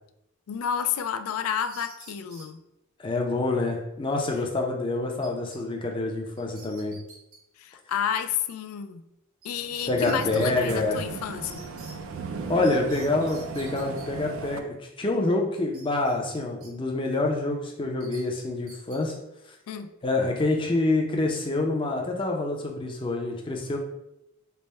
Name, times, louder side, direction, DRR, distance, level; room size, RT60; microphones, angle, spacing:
voice 1, 0.5-2.6 7.6-9.0 9.4-11.6 19.7-19.9, left 8 dB, 90° left, 10 dB, 0.3 m, -30 dB
sound 1, 1.3-2.5 5.2-5.6 5.9-6.0 6.4-7.4 9.4-9.5 9.7-10.5 11.4-11.9 12.6-14.1 15.7-16.7 17.1-17.3 18.0-19.0, right 3 dB, 90° right, 1.0 m, -48 dB
voice 2, 3.0-7.0 9.9-11.0 12.5-19.1 20.0-23.8, left 2 dB, 25° left, 1 dB, 0.4 m, -27 dB
sound 2, 9.6-14.6, right 4 dB, 75° right, 0.3 m, -37 dB
3.3 x 2.0 x 4.1 m, 0.86 s
head